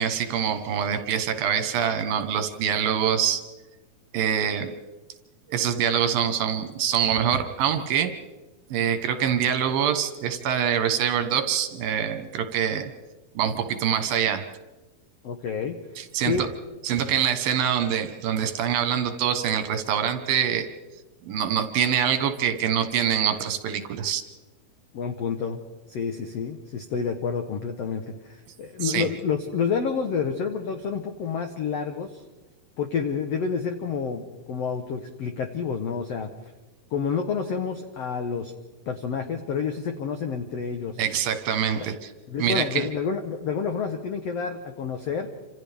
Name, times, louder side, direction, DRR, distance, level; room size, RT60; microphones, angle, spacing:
voice 1, 0.0-3.4 4.1-4.7 5.5-8.1 8.7-12.9 13.4-14.5 16.0-16.5 16.8-20.7 21.3-24.2 28.8-29.1 41.0-42.1 42.4-42.9, right 9 dB, 70° right, 7 dB, 3.0 m, -25 dB
voice 2, 15.2-15.7 16.3-16.5 24.9-25.6 25.9-32.2 32.8-36.3 36.9-38.5 38.9-41.0 41.8-41.9 42.3-45.3, left 6 dB, 80° left, 6 dB, 1.4 m, -29 dB
28.0 x 26.5 x 3.5 m, 1.2 s
omnidirectional pair, 4.4 m